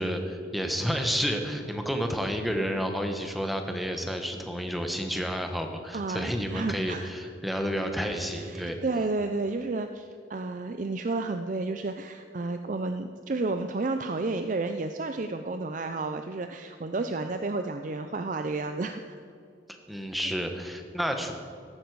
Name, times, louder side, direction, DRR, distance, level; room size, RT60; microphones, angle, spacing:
voice 1, 0.0-8.8 19.9-21.3, equal, ahead, 4 dB, 1.0 m, -30 dB
voice 2, 5.9-7.1 8.1-19.2, right 3 dB, 40° right, 7 dB, 0.4 m, -31 dB
14.5 x 12.0 x 4.7 m, 2.4 s
head